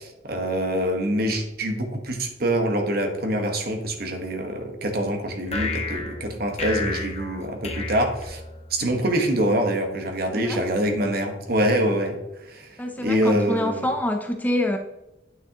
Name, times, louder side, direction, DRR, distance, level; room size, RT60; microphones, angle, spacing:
voice 1, 0.0-8.4 8.7-12.2 12.4-13.9, right 1 dB, 55° right, 4 dB, 1.3 m, -25 dB
sound 1, 5.5-8.9, left 3 dB, 35° left, 1.1 m, -31 dB
voice 2, 12.8-14.8, left 1 dB, 10° left, 4 dB, 0.5 m, -26 dB
9.0 x 6.2 x 2.9 m, 0.96 s
head